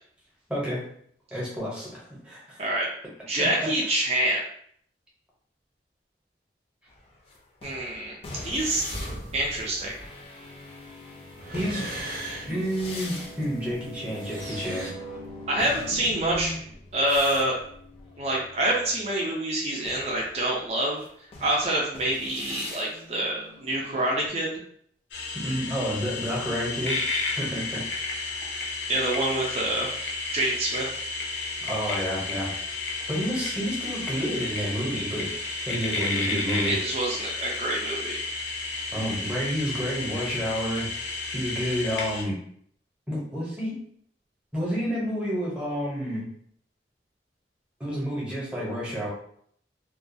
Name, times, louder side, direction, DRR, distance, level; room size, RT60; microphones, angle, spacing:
voice 1, 0.5-0.9 1.3-2.6 3.4-3.7 11.5-11.9 12.5-14.9 25.4-27.0 27.3-27.8 31.7-32.5 33.1-36.8 38.9-40.9 41.3-42.4 43.1-43.8 44.5-46.3 47.8-49.1, equal, 5° right, -6 dB, 0.7 m, -29 dB
voice 2, 3.2-4.4 7.6-8.1 8.4-8.8 9.3-9.9 15.5-16.6 16.9-17.6 18.2-21.0 21.4-24.5 28.9-29.9 30.3-30.9 36.7-38.2, right 1 dB, 35° right, -3 dB, 0.4 m, -26 dB
sound 1, 6.9-19.1 19.8-24.3, left 2 dB, 35° left, 0.4 m, -41 dB
sound 2, 8.9-14.9, right 1 dB, 70° right, 0.7 m, -39 dB
sound 3, 25.1-42.2, left 3 dB, 85° left, 0.6 m, -32 dB
2.3 x 2.2 x 2.6 m, 0.64 s
head